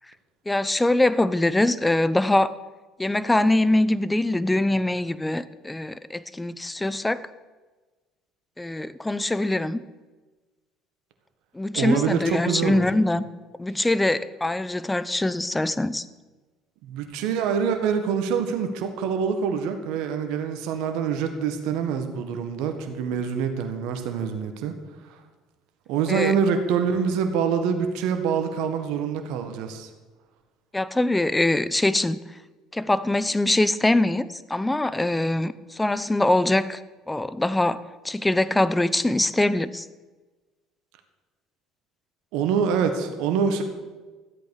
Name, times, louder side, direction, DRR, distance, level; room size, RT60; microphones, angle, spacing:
voice 1, 0.5-2.5 3.0-7.2 8.6-9.8 11.5-13.2 13.6-16.0 26.1-26.3 30.7-32.2 32.7-36.8 37.1-37.8 38.0-39.9, left 1 dB, 10° left, 16 dB, 0.7 m, -23 dB
voice 2, 11.7-12.8 16.8-24.7 25.1-25.2 25.9-29.9 42.3-43.6, right 6 dB, 70° right, 6 dB, 1.6 m, -25 dB
13.5 x 8.4 x 6.5 m, 1.3 s
hypercardioid pair, 70°, 0 cm